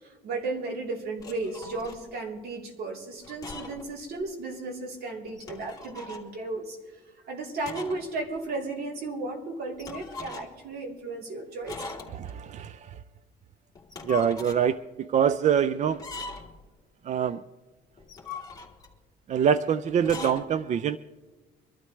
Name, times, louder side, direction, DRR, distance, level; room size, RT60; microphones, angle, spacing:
voice 1, 0.0-12.0, right 3 dB, 70° right, 0 dB, 3.4 m, -35 dB
sound 1, 1.2-2.0 3.2-3.9 4.2-4.3 5.3-6.3 7.6-8.1 8.4-8.5 9.8-10.6 11.7-12.4 13.8-14.6 15.9-16.6 18.0-19.0 20.0-20.4, left 4 dB, 20° left, 2.8 m, -40 dB
voice 2, 12.1-12.9 14.0-16.0 17.1-17.4 19.3-21.0, right 8 dB, 45° right, 15 dB, 0.4 m, -25 dB
24.5 x 12.5 x 3.2 m, 1.2 s
cardioid pair, 110°, 17 cm